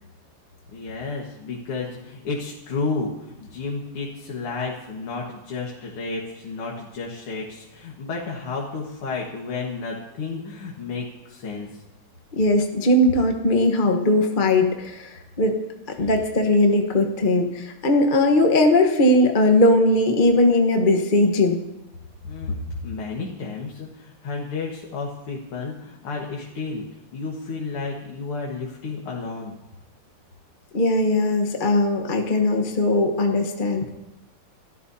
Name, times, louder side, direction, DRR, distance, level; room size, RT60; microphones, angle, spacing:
voice 1, 0.7-11.8 16.0-16.1 22.2-26.8 27.1-29.5, left 4 dB, 80° left, -2 dB, 2.5 m, -32 dB
voice 2, 12.4-15.6 16.0-21.6 30.7-33.9, left 1 dB, 30° left, 3 dB, 1.0 m, -19 dB
29.0 x 13.5 x 2.8 m, 0.94 s
omnidirectional pair, 2.4 m